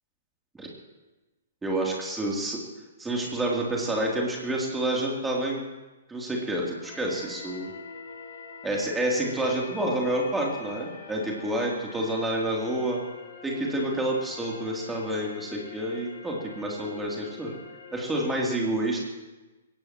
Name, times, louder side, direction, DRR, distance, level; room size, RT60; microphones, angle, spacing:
voice 1, 1.6-2.6 3.0-5.6 6.1-7.7 8.6-13.0 13.4-17.5 17.9-19.0, right 1 dB, 5° right, -2 dB, 3.2 m, -28 dB
sound 1, 6.8-18.4, left 5 dB, 50° left, 2.2 m, -45 dB
21.0 x 17.5 x 3.1 m, 1.1 s
figure-of-eight pair, 120°, 0 cm